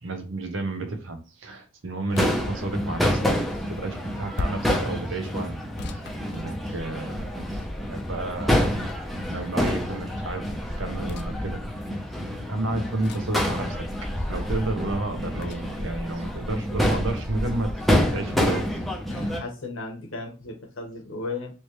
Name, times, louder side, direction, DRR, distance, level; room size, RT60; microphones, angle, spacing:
voice 1, 0.0-3.2 3.7-5.6 5.9-8.8 9.2-10.5 10.8-11.6 12.3-13.8 14.3-17.8 18.1-18.8, right 2 dB, 70° right, 6 dB, 0.8 m, -31 dB
Crowd / Fireworks, 2.1-19.4, equal, ahead, 0.7 m, -27 dB
sound 1, 2.2-2.5 4.3-4.8 5.8-7.0 8.6-9.2 11.1-11.3 13.0-13.4 15.4-15.8 16.8-17.0, left 3 dB, 55° left, 0.4 m, -36 dB
voice 2, 19.1-21.5, left 3 dB, 90° left, 1 dB, 1.2 m, -35 dB
3.3 x 3.1 x 3.1 m, 0.34 s
head